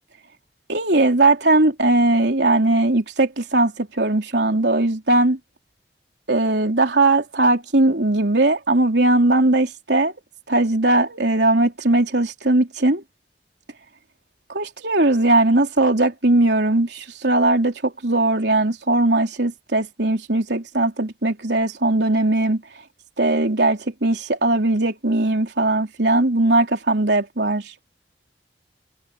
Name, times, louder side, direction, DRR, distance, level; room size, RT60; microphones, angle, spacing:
voice 1, 0.7-5.4 6.3-10.1 10.5-13.0 14.5-22.6 23.2-27.7, right 2 dB, 75° right, 3.5 m, -19 dB
head